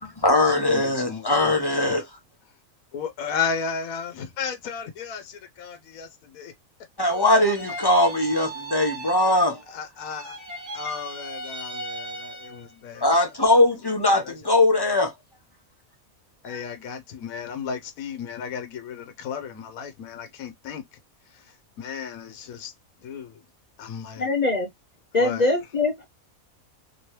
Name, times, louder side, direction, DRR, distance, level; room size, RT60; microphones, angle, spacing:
voice 1, 0.0-2.1 7.0-9.6 13.0-15.1 16.5-16.6, left 2 dB, 20° left, 0.8 m, -21 dB
voice 2, 0.7-2.0 2.9-6.5 9.7-10.4 10.7-13.1 14.1-14.3 16.4-20.8 21.3-22.7 23.0-23.4 23.8-24.3 25.2-25.5, left 6 dB, 85° left, 1.1 m, -34 dB
sound 1, 7.1-9.7 10.0-12.7, right 1 dB, 50° right, 1.5 m, -37 dB
voice 3, 24.2-24.7 25.1-26.0, left 2 dB, 50° left, 0.5 m, -23 dB
3.1 x 2.9 x 2.9 m
omnidirectional pair, 1.4 m